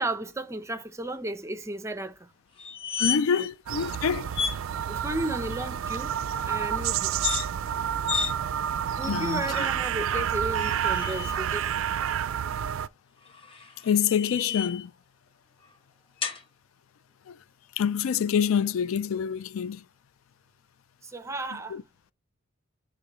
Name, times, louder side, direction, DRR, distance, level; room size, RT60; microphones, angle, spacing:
voice 1, 0.0-2.3 3.3-3.5 4.9-6.2 6.4-7.1 9.0-11.8 21.0-21.8, right 1 dB, 15° right, 0.6 m, -34 dB
sound 1, 2.6-3.5 3.8-3.9 4.3-4.6 7.1-7.5 8.1-8.3 9.0-9.6 10.6-11.4 13.3-14.9 16.2-16.4, left 6 dB, 25° left, 1.1 m, -32 dB
voice 2, 3.0-4.3 9.1-9.6 13.8-14.9 17.3-17.4 17.8-19.8 21.7-21.8, left 7 dB, 85° left, 0.4 m, -26 dB
sound 2, 3.7-12.9, right 9 dB, 75° right, 0.3 m, -29 dB
9.8 x 3.4 x 3.0 m
head